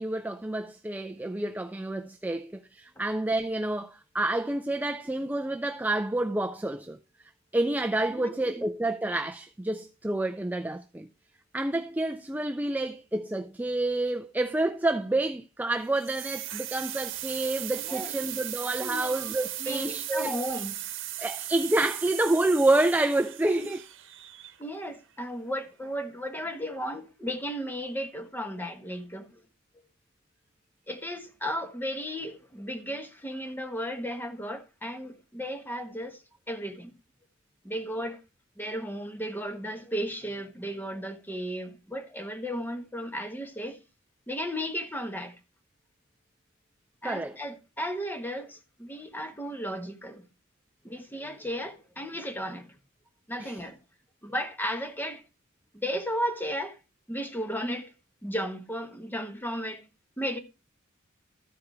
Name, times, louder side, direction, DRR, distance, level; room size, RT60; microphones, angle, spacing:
voice 1, 0.0-7.0 7.5-11.1 11.5-20.3 21.2-23.8 47.0-47.3 53.4-53.5, right 2 dB, 10° right, 0.4 m, -28 dB
voice 2, 8.1-8.7 17.8-18.1 18.8-19.1 19.6-20.7 23.6-23.7 24.6-29.4 30.9-36.2 36.5-36.9 37.6-38.2 38.6-43.8 44.3-45.3 47.0-50.2 50.8-52.7 53.3-53.8 54.2-55.2 55.7-56.8 57.1-57.9 58.2-59.8 60.2-60.4, equal, 10° left, 1.1 m, -34 dB
sound 1, 16.0-24.8, right 13 dB, 65° right, 1.0 m, -37 dB
13.0 x 4.8 x 4.7 m
head